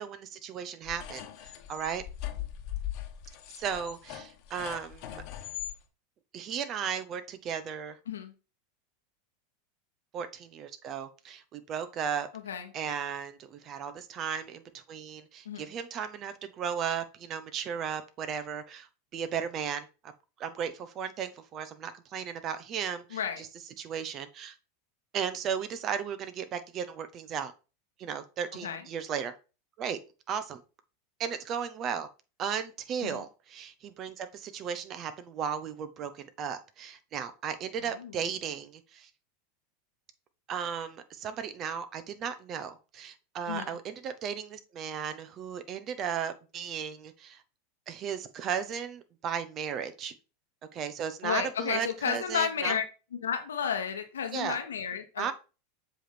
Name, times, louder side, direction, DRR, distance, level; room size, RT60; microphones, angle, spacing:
voice 1, 0.0-2.0 3.6-5.2 6.3-8.0 10.1-12.3 12.7-18.9 19.1-20.1 20.4-23.5 23.8-24.6 25.1-27.5 28.0-29.3 29.8-30.0 30.3-30.6 31.2-32.1 32.4-39.1 40.5-47.4 47.9-50.1 50.7-52.8 54.3-54.6 55.2-55.3, right 7 dB, 40° right, 0.9 m, -35 dB
sound 1, 0.9-5.8, left 12 dB, 55° left, 1.2 m, -40 dB
voice 2, 12.3-12.7 15.4-15.6 23.1-23.4 28.6-28.8 33.0-33.2 38.0-38.1 43.5-43.8 51.2-52.8 53.1-55.3, left 7 dB, 80° left, 1.1 m, -32 dB
7.6 x 3.5 x 4.4 m
hypercardioid pair, 90°, 0 cm